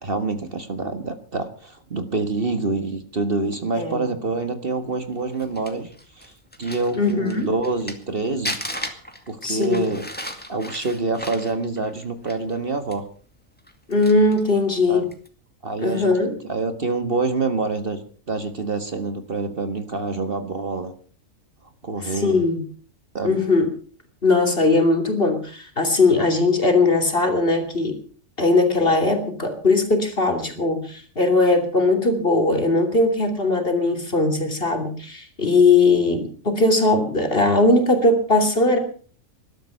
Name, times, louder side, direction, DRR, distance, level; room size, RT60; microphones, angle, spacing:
voice 1, 0.0-5.9 6.2-6.3 6.6-8.6 9.3-10.0 10.5-13.0 14.9-15.0 15.6-18.0 18.3-20.9 21.8-22.4 23.1-23.4, right 3 dB, 45° right, 9 dB, 1.7 m, -26 dB
Crumpling crinkling, 5.1-8.1 8.4-12.6 12.9-13.0 13.6-14.5 15.0-15.3, left 1 dB, 5° left, 2.2 m, -35 dB
voice 2, 7.0-7.5 9.4-9.9 13.9-15.1 15.8-16.3 22.0-22.6 23.2-23.7 24.2-28.0 28.4-38.8, left 3 dB, 45° left, 5 dB, 3.3 m, -19 dB
20.5 x 12.5 x 5.6 m, 0.43 s
omnidirectional pair, 1.4 m